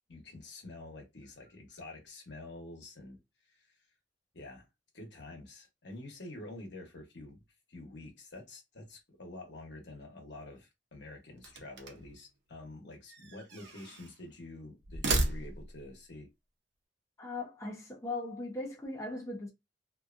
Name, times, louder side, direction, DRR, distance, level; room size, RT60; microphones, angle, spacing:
voice 1, 0.1-3.2 3.5-3.7 4.3-4.7 4.9-7.4 7.7-16.3, left 2 dB, 70° left, 1.1 m, -48 dB
sound 1, 11.4-12.2 13.1-14.2 14.8-15.9, right 2 dB, 70° right, 0.7 m, -34 dB
voice 2, 17.2-19.5, left 2 dB, 15° left, 0.7 m, -39 dB
2.7 x 2.4 x 2.5 m
head